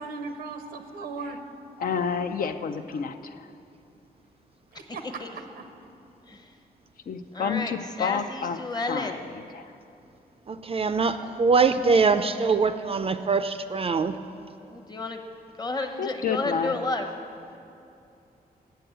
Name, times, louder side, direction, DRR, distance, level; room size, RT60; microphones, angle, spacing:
voice 1, 0.0-1.4 4.7-5.0 5.6-5.9, right 3 dB, 90° right, 6 dB, 0.7 m, -37 dB
voice 2, 1.8-3.5 7.1-8.6 8.9-9.2 9.5-9.7 16.0-16.8, left 6 dB, 60° left, 8 dB, 0.5 m, -29 dB
voice 3, 4.7-5.3 6.3-6.5 7.3-9.3 14.6-15.2 15.6-17.1, left 2 dB, 25° left, 4 dB, 1.0 m, -32 dB
voice 4, 10.5-14.1, right 4 dB, 35° right, 10 dB, 0.4 m, -23 dB
7.9 x 7.7 x 7.9 m, 2.6 s
cardioid pair, 85°, 16 cm